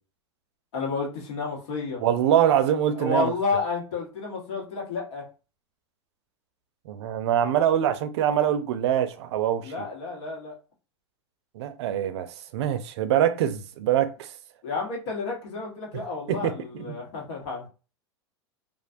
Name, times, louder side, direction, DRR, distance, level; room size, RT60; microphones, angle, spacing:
voice 1, 0.7-2.0 3.0-5.2 9.6-10.6 14.6-17.7, left 3 dB, 75° left, 1.2 m, -30 dB
voice 2, 2.0-3.3 6.9-9.9 11.5-14.3 15.9-16.9, right 10 dB, 70° right, 0.4 m, -24 dB
2.4 x 2.2 x 2.5 m
hypercardioid pair, 110°, 15 cm